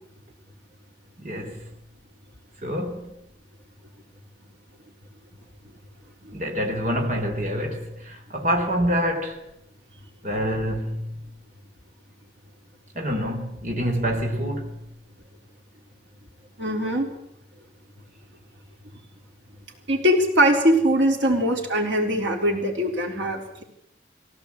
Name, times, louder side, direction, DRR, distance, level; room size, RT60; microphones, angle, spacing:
voice 1, 1.2-1.7 2.6-3.1 6.3-9.4 10.2-11.1 12.9-14.8, equal, 45° right, 3.7 m, -26 dB
voice 2, 16.6-17.1 19.9-23.6, equal, 90° right, 4.0 m, -22 dB
22.0 x 17.0 x 8.4 m
head